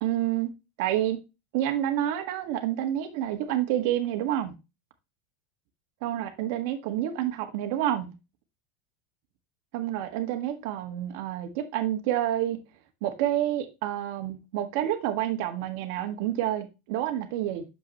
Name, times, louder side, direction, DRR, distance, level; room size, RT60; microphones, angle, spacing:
voice 1, 0.0-0.5 0.8-1.2 1.5-4.5 6.0-8.1 9.7-12.6 13.0-17.6, right 12 dB, 55° right, 1.5 m, -28 dB
7.1 x 5.7 x 2.9 m
supercardioid pair, 165°, 0 cm